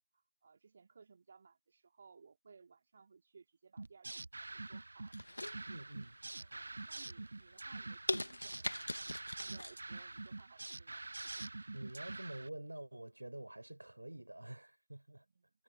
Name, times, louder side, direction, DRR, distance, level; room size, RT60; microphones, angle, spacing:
voice 1, 0.4-5.5 6.4-11.1 15.3-15.5, right 5 dB, 20° right, 2.8 m, -62 dB
sound 1, 3.8-12.5, right 2 dB, 35° right, 0.5 m, -46 dB
sound 2, 5.1-6.1 6.6-7.0 7.5-7.6 8.1-9.8 10.1-10.2, left 1 dB, 55° left, 1.3 m, -40 dB
voice 2, 5.7-6.2 11.7-15.2, right 1 dB, 55° right, 7.4 m, -48 dB
figure-of-eight pair, 170°, 0 cm